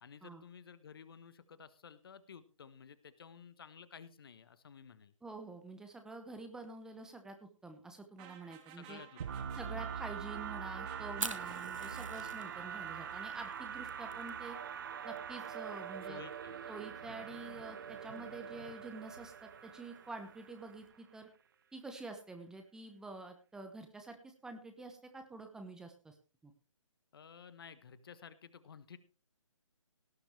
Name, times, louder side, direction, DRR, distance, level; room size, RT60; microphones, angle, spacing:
voice 1, 0.0-5.1 8.7-10.0 16.0-16.6 17.1-17.3 27.1-29.0, left 7 dB, 45° left, 15 dB, 1.2 m, -54 dB
voice 2, 5.2-9.0 9.5-14.6 15.0-16.2 16.7-21.3 21.7-26.1 26.4-26.5, right 3 dB, 5° right, 5 dB, 1.0 m, -48 dB
sound 1, 8.2-13.7, right 10 dB, 20° right, 1.7 m, -55 dB
sound 2, 9.2-21.0, right 7 dB, 40° right, 0.9 m, -44 dB
Fire, 11.1-20.9, right 3 dB, 80° right, 1.9 m, -48 dB
18.0 x 10.5 x 3.3 m, 0.33 s
figure-of-eight pair, 145°, 17 cm